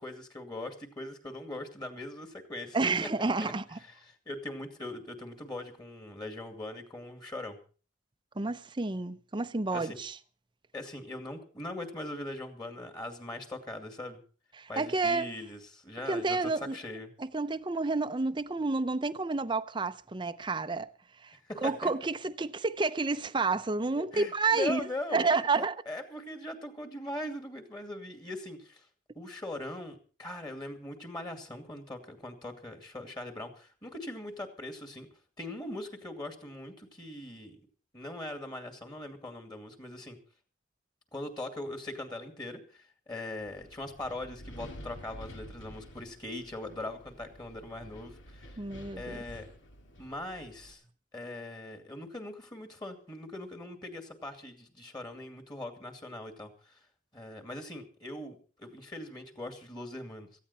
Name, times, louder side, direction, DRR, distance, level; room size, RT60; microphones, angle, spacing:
voice 1, 0.0-3.1 3.8-7.6 9.7-10.0 10.7-14.2 14.7-17.1 21.4-21.9 24.0-28.9 29.2-35.1 35.4-37.6 37.9-40.2 41.1-48.6 49.0-49.5 50.0-50.8 51.1-56.8 57.1-60.3, left 1 dB, 25° left, 2.4 m, -41 dB
voice 2, 2.7-3.8 8.4-10.2 14.6-15.3 16.1-16.8 17.2-20.9 21.2-21.3 21.6-24.8 25.1-25.8 48.6-49.2, right 3 dB, 25° right, 0.6 m, -30 dB
Wind, 43.4-50.7, equal, 85° left, 2.6 m, -49 dB
18.0 x 14.5 x 4.3 m
head